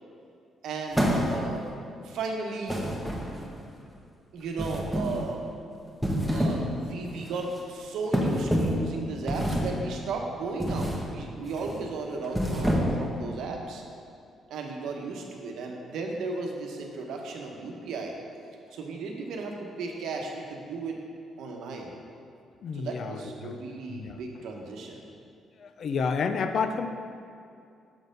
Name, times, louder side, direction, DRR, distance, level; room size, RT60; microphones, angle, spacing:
voice 1, 0.6-1.7 2.0-2.8 4.3-5.4 6.3-13.8 14.5-18.1 18.7-21.0 21.4-22.0 22.7-25.0, right 3 dB, 80° right, 1 dB, 0.9 m, -35 dB
sound 1, 0.9-1.6 2.7-3.6 4.6-5.3 5.9-6.7 7.0-7.3 8.1-8.9 9.3-9.8 10.6-11.1 11.4-11.7 12.2-13.1, equal, 5° right, 1.1 m, -27 dB
voice 2, 22.6-23.5 23.9-24.2 25.6-26.9, left 5 dB, 55° left, 8 dB, 0.4 m, -30 dB
6.9 x 4.2 x 5.2 m, 2.4 s
cardioid pair, 90°, 0 cm